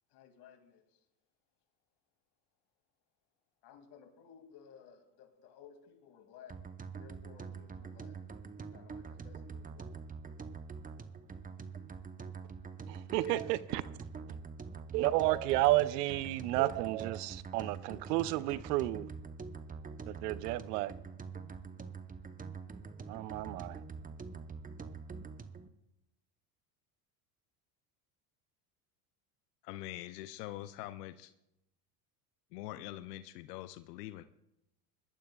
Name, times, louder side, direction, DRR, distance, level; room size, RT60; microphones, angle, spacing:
voice 1, 0.1-1.0 3.6-8.2 8.7-10.0, left 8 dB, 55° left, 2.5 m, -57 dB
sound 1, 6.5-25.7, right 5 dB, 20° right, 0.9 m, -45 dB
voice 2, 12.9-13.8 14.9-19.1 20.1-20.9 23.1-23.8, right 16 dB, 80° right, 0.7 m, -31 dB
voice 3, 29.6-31.3 32.5-34.2, left 15 dB, 80° left, 0.7 m, -44 dB
22.0 x 12.5 x 2.4 m
hypercardioid pair, 85°, 47 cm